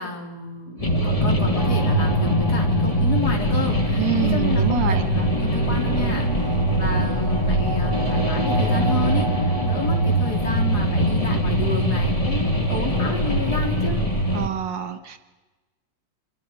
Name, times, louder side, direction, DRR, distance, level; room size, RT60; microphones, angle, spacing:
voice 1, 0.0-14.0, left 3 dB, 55° left, 1 dB, 4.0 m, -31 dB
sound 1, 0.8-14.5, equal, 20° left, 1.8 m, -22 dB
sound 2, 1.5-12.7, equal, 90° left, 4.2 m, -36 dB
voice 2, 4.0-5.1 14.3-15.2, right 10 dB, 75° right, 8 dB, 2.0 m, -26 dB
25.5 x 24.0 x 5.2 m, 1.2 s
omnidirectional pair, 2.0 m